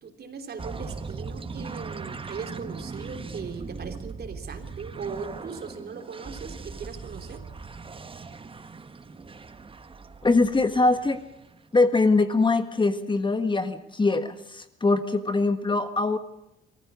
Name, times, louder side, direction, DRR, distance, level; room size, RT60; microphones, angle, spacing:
voice 1, 0.0-7.4, right 5 dB, 55° right, 5 dB, 3.3 m, -39 dB
sound 1, 0.6-11.7, right 4 dB, 25° right, 1.3 m, -40 dB
voice 2, 10.2-11.2 11.7-16.2, left 3 dB, 25° left, 10 dB, 1.6 m, -22 dB
23.5 x 15.0 x 8.2 m, 0.84 s
cardioid pair, 90°, 20 cm